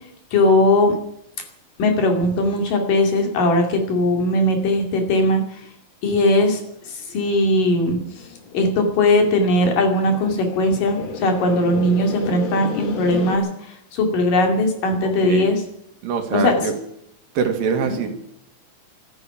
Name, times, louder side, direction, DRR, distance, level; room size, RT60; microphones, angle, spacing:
voice 1, 0.3-1.0 1.8-5.7 6.0-8.0 8.5-15.6 16.3-16.5 17.9-18.0, left 1 dB, 70° left, 4 dB, 4.1 m, -19 dB
sound 1, 7.9-13.4, left 6 dB, 50° left, 1.6 m, -33 dB
voice 2, 15.0-15.6 16.0-16.8 17.4-18.1, right 6 dB, 75° right, 6 dB, 3.5 m, -23 dB
12.5 x 10.0 x 9.9 m, 0.76 s
omnidirectional pair, 4.0 m